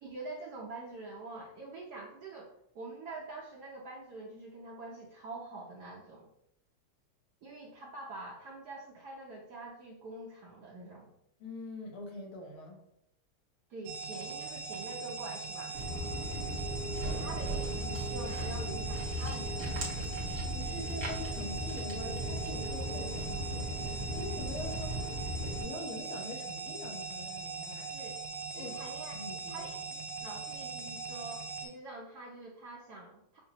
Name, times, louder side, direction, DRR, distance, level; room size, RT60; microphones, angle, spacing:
voice 1, 0.0-6.3 7.4-11.1 13.7-15.8 17.1-20.2 27.9-28.2 28.5-33.4, right 2 dB, 75° right, -3 dB, 0.9 m, -45 dB
voice 2, 11.4-12.8 20.5-25.2 25.6-27.9 28.5-28.7 29.1-29.7, left 2 dB, 75° left, 0 dB, 1.7 m, -44 dB
sound 1, 13.9-31.7, right 4 dB, 90° right, 1.5 m, -41 dB
Walk footsteps, 15.7-25.6, equal, 45° right, 1.1 m, -37 dB
5.9 x 2.5 x 2.8 m, 0.76 s
omnidirectional pair, 2.3 m